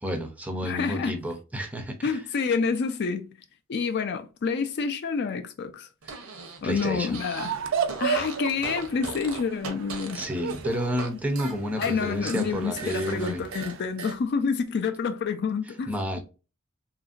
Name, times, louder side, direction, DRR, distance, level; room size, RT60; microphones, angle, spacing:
voice 1, 0.0-2.2 6.0-6.3 6.6-7.2 10.1-13.4 15.9-16.2, equal, 5° right, 0.5 m, -30 dB
voice 2, 0.6-1.1 2.0-3.3 3.7-5.9 6.6-7.5 8.0-10.2 11.8-15.9, left 5 dB, 50° left, 0.4 m, -28 dB
Fart, 6.0-7.6 7.8-11.1 11.4-14.2, right 4 dB, 90° right, 0.8 m, -39 dB
sound 1, 7.4-13.8, right 7 dB, 65° right, 0.4 m, -34 dB
2.8 x 2.5 x 2.4 m
head